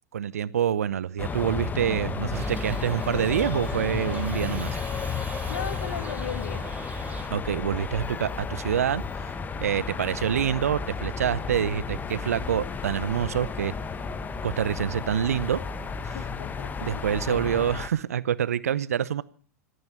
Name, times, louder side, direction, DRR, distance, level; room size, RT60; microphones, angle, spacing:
voice 1, 0.1-4.8 7.3-9.3 9.6-13.7 14.4-15.6 16.1-16.2 16.8-19.2, right 9 dB, 80° right, 19 dB, 0.8 m, -26 dB
sound 1, 1.2-17.9, left 5 dB, 20° left, 1.2 m, -33 dB
Shout / Livestock farm animals working animals, 2.3-7.3, right 5 dB, 20° right, 1.8 m, -43 dB
voice 2, 5.5-6.6 16.1-16.9 17.3-17.7, left 9 dB, 75° left, 14 dB, 1.4 m, -37 dB
sound 2, 5.9-16.9, right 1 dB, 40° left, 5.6 m, -50 dB
25.0 x 9.6 x 6.0 m, 0.43 s
hypercardioid pair, 90°, 8 cm